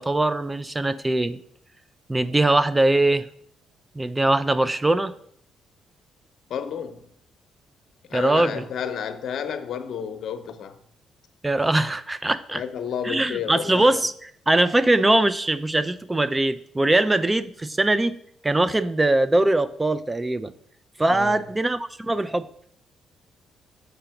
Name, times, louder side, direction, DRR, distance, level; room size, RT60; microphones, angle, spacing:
voice 1, 0.0-1.4 2.1-3.3 4.0-5.1 8.1-8.6 11.4-12.6 13.0-18.2 18.4-20.5 21.0-22.5, right 2 dB, 15° right, 0.4 m, -21 dB
voice 2, 6.5-7.0 8.1-10.8 12.5-13.9 21.1-21.4, left 7 dB, 65° left, 0.7 m, -31 dB
6.8 x 3.8 x 5.7 m
cardioid pair, 90°, 0 cm